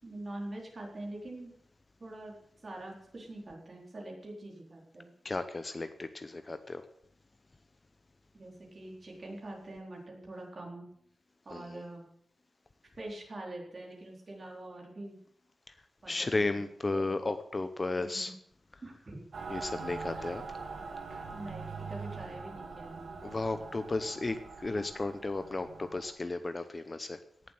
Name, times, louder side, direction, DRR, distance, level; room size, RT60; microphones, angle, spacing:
voice 1, 0.0-1.5 2.0-2.3 2.6-5.1 8.3-10.9 11.5-12.0 13.0-15.2 16.0-16.6 16.9-17.1 18.0-18.3 18.8-19.2 20.2-20.3 21.3-23.2, right 1 dB, 35° right, 0 dB, 4.2 m, -44 dB
voice 2, 5.2-6.8 11.5-11.8 16.1-18.3 19.5-20.6 23.2-27.2, left 2 dB, 25° left, 10 dB, 0.7 m, -34 dB
Mechanical fan, 19.3-26.1, right 4 dB, 65° right, 2.6 m, -43 dB
17.5 x 7.5 x 7.7 m, 0.70 s
wide cardioid pair, 170°, 0 cm